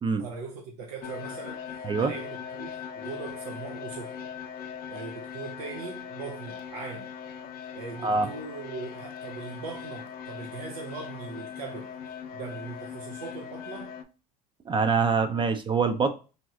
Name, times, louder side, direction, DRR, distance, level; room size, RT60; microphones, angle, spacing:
voice 1, 0.2-4.3 4.9-7.1 7.7-11.9 12.3-13.9, right 4 dB, 90° right, 0.5 m, -40 dB
sound 1, 1.0-14.0, left 8 dB, 50° left, 0.5 m, -40 dB
voice 2, 14.7-16.1, right 5 dB, 25° right, 0.4 m, -24 dB
3.0 x 2.7 x 2.3 m
hypercardioid pair, 85°, 19 cm